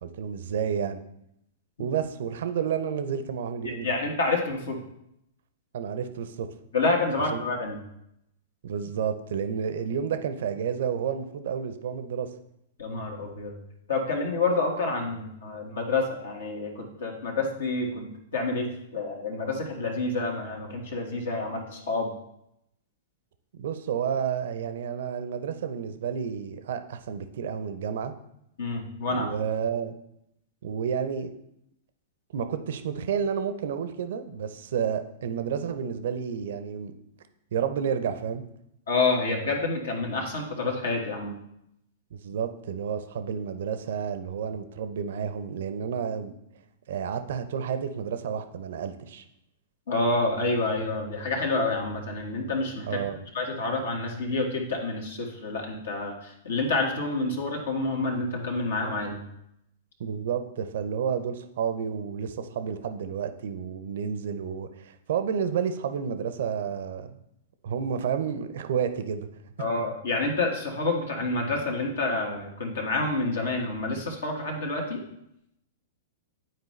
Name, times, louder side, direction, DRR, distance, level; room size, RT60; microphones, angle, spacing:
voice 1, 0.0-1.0 1.8-3.9 5.7-6.5 7.3-7.4 8.6-12.3 23.5-28.1 29.1-30.0 30.6-31.3 32.3-36.9 37.5-38.4 42.1-46.3 46.9-49.2 52.9-53.2 60.0-67.2 67.6-69.3 69.6-69.7, right 7 dB, 65° right, 10 dB, 0.6 m, -30 dB
voice 2, 3.6-4.8 6.7-7.8 12.8-13.5 13.9-22.1 28.6-29.3 38.9-41.4 49.9-53.0 53.3-59.2 69.6-75.0, left 3 dB, 70° left, 0 dB, 1.4 m, -28 dB
9.3 x 4.5 x 3.2 m, 0.79 s
figure-of-eight pair, 110°, 0 cm